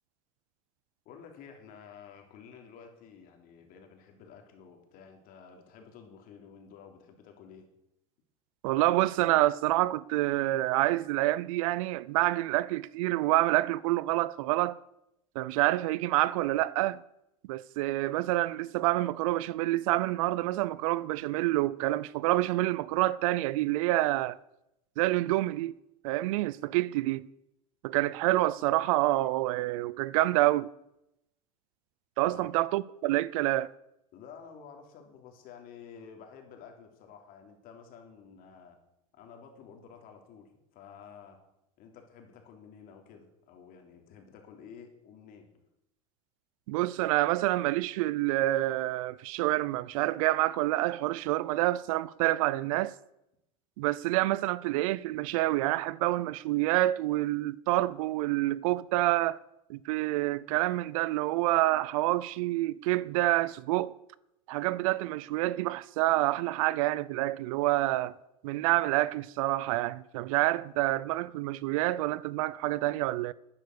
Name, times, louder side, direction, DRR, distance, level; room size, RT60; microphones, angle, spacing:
voice 1, 1.0-7.6 32.2-32.5 34.1-38.8 39.1-41.4 41.8-45.5, left 7 dB, 55° left, 3.4 m, -51 dB
voice 2, 8.6-14.8 15.3-17.0 17.5-24.4 25.0-25.7 26.0-27.3 27.8-30.7 32.2-33.7 46.7-52.9 53.8-59.4 59.7-63.9 64.5-68.2 68.4-73.3, right 17 dB, 75° right, 0.6 m, -27 dB
12.0 x 9.9 x 6.8 m
supercardioid pair, 105°, 18 cm